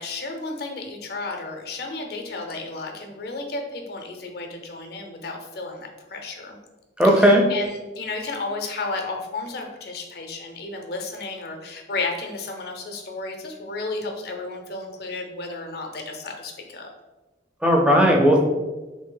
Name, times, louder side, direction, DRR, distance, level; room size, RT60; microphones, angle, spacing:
voice 1, 0.0-6.6 7.0-16.9, left 3 dB, 55° left, 3 dB, 0.5 m, -33 dB
voice 2, 7.0-7.4 17.6-18.4, equal, 5° right, 0 dB, 0.4 m, -16 dB
3.2 x 2.6 x 3.8 m, 1.2 s
head